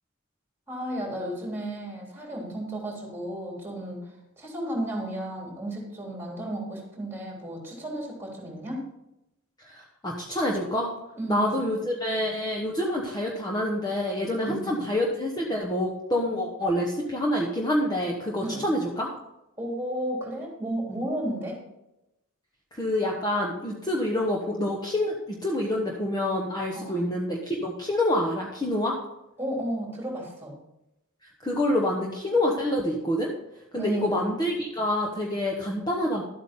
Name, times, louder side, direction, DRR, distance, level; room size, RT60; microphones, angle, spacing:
voice 1, 0.7-8.9 11.2-11.8 14.4-14.9 18.4-18.6 19.6-21.6 26.7-27.0 29.4-30.6 33.8-34.1, right 1 dB, 10° right, -2 dB, 3.2 m, -33 dB
voice 2, 9.6-10.9 11.3-19.1 22.7-28.9 31.4-33.3 33.7-36.2, left 1 dB, 20° left, -1 dB, 1.1 m, -27 dB
12.0 x 8.3 x 3.7 m, 0.89 s
head